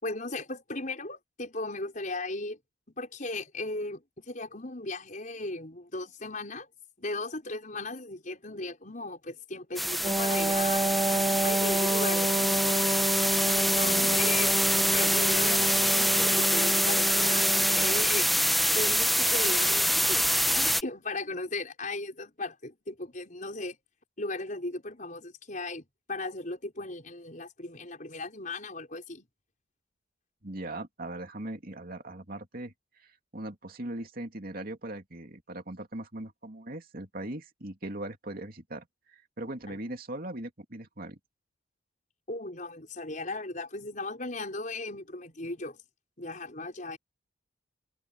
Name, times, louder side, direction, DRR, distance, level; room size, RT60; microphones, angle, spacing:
voice 1, 0.0-2.6 3.0-6.7 7.0-10.9 11.4-12.5 13.5-14.5 14.9-18.3 18.7-20.3 20.6-23.8 24.2-29.3 39.7-39.8 42.3-45.8 46.2-47.0, left 2 dB, 45° left, 5.6 m, -37 dB
sound 1, 9.8-20.8, equal, ahead, 1.2 m, -25 dB
Wind instrument woodwind instrument, 10.0-18.1, right 2 dB, 15° right, 1.0 m, -30 dB
voice 2, 13.8-14.4 30.4-41.2, right 1 dB, 50° right, 2.7 m, -40 dB
head